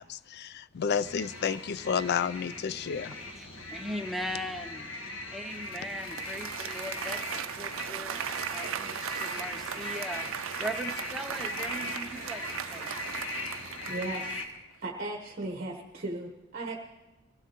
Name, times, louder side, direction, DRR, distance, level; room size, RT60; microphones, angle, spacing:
voice 1, 0.0-3.1, left 7 dB, 50° left, 17 dB, 0.4 m, -31 dB
sound 1, 0.9-14.5, left 2 dB, 90° left, 1.5 m, -40 dB
voice 2, 3.1-4.9 5.3-8.2 8.5-13.0, equal, ahead, 4 dB, 0.6 m, -39 dB
Applause, 5.6-14.6, right 9 dB, 70° right, 0.5 m, -38 dB
voice 3, 13.9-14.4 14.8-16.8, right 2 dB, 45° right, 1 dB, 1.1 m, -36 dB
22.5 x 15.5 x 3.0 m, 1.1 s
head